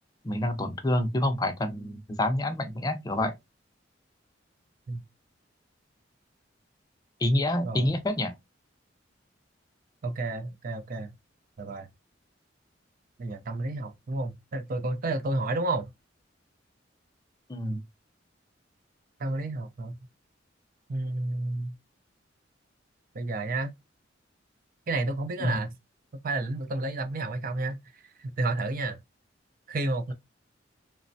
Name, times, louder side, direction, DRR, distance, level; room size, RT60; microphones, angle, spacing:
voice 1, 0.2-3.3 7.2-8.4 17.5-17.8 25.4-25.6, left 1 dB, 20° left, 0.5 m, -27 dB
voice 2, 7.6-8.0 10.0-11.1 11.6-11.9 13.2-15.9 19.2-20.0 20.9-21.7 23.1-23.7 24.9-25.7 26.2-29.0 29.7-30.1, right 2 dB, 50° right, 0.5 m, -31 dB
3.1 x 2.1 x 2.6 m
head